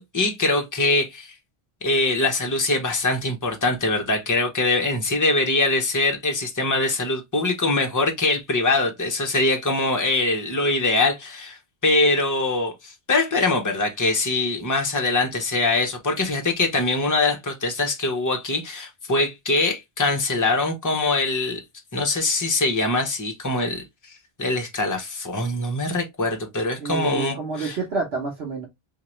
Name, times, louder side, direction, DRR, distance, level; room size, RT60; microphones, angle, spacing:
voice 1, 0.0-1.3 1.8-21.6 21.9-23.8 24.4-27.8, left 2 dB, 20° left, 0.8 m, -23 dB
voice 2, 26.8-28.7, right 4 dB, 85° right, 1.2 m, -29 dB
3.7 x 2.9 x 3.0 m
omnidirectional pair, 1.1 m